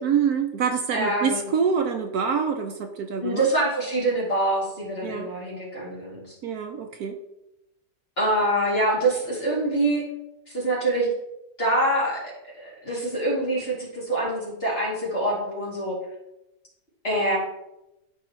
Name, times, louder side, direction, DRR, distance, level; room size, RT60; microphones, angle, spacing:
voice 1, 0.0-3.5 5.0-5.3 6.4-7.2, right 6 dB, 70° right, 5 dB, 1.0 m, -26 dB
voice 2, 0.9-1.5 3.2-6.3 8.2-10.0 10.5-11.1 11.6-15.9 17.0-17.4, right 1 dB, 35° left, -5 dB, 3.0 m, -25 dB
13.5 x 4.7 x 3.1 m, 0.91 s
omnidirectional pair, 1.8 m